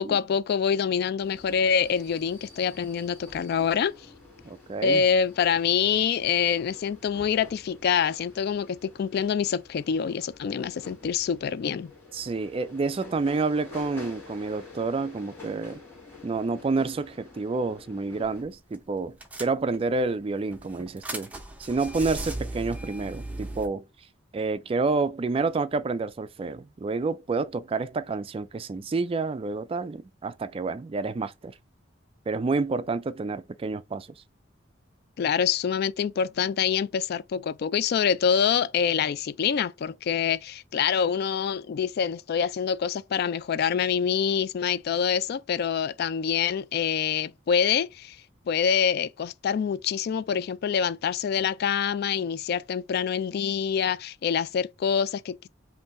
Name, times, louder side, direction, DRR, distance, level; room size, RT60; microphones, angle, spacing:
voice 1, 0.0-4.0 4.8-11.9 35.2-48.2 48.5-55.5, left 7 dB, 55° left, 0.3 m, -26 dB
sound 1, 1.2-18.4, left 3 dB, 10° left, 1.9 m, -48 dB
voice 2, 4.4-5.0 12.1-15.8 16.2-21.3 21.6-23.8 24.3-31.5 32.3-34.1, right 3 dB, 30° right, 0.3 m, -29 dB
sound 2, 18.2-18.5 18.7-18.8 19.2-20.0 20.5-23.7, right 1 dB, 10° right, 0.7 m, -37 dB
5.4 x 2.6 x 3.4 m
head